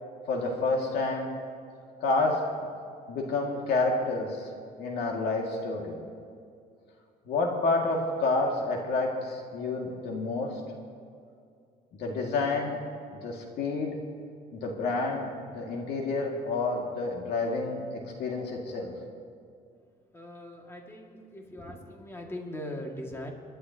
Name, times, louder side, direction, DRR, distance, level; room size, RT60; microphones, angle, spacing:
voice 1, 0.3-1.3 2.0-2.4 3.1-4.4 4.8-6.0 7.3-10.5 12.0-12.8 13.2-14.0 14.5-15.3 15.5-17.8 18.2-18.9, left 3 dB, 75° left, 1 dB, 2.1 m, -29 dB
voice 2, 20.1-23.3, left 1 dB, 15° left, 0 dB, 2.1 m, -40 dB
27.0 x 11.5 x 2.9 m, 2.3 s
cardioid pair, 110°, 17 cm